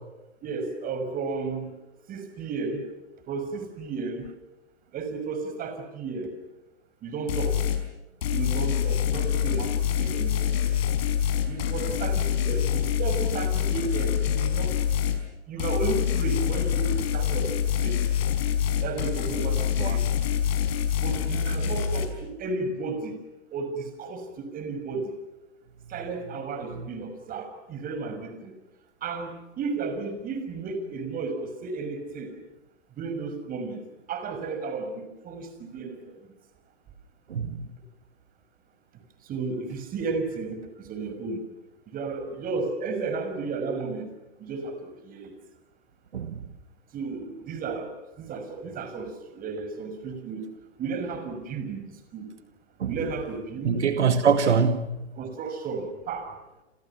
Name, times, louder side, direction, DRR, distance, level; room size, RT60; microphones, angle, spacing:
voice 1, 0.4-1.7 2.1-2.8 3.3-4.3 4.9-6.3 7.0-7.6 8.3-10.6 11.5-14.7 15.5-18.0 18.8-20.0 21.0-23.2 23.5-25.1 25.9-28.5 29.0-32.3 33.0-33.8 34.1-36.0 39.3-41.4 41.9-44.1 44.4-45.3 46.9-47.9 48.2-50.5 50.8-51.8 52.1-52.3 52.9-53.8 55.2-56.3, right 4 dB, 25° right, 6.2 m, -33 dB
sound 1, 7.3-7.8 8.2-15.2 15.6-22.1, left 9 dB, 60° left, 5.6 m, -26 dB
voice 2, 53.7-54.9, right 6 dB, 70° right, 2.2 m, -23 dB
29.5 x 28.5 x 6.1 m
hypercardioid pair, 125°, 36 cm